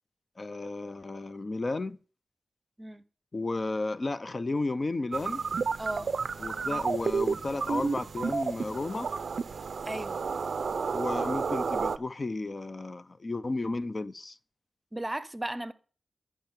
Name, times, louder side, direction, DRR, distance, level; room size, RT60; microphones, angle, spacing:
voice 1, 0.4-2.0 3.3-5.5 6.4-9.1 10.9-14.4, left 2 dB, 30° left, 0.6 m, -33 dB
sound 1, 5.1-12.0, right 5 dB, 65° right, 0.5 m, -31 dB
voice 2, 5.8-6.1 9.9-10.2 14.9-15.7, right 1 dB, 15° right, 0.8 m, -35 dB
12.5 x 5.8 x 8.9 m
wide cardioid pair, 170°, 0 cm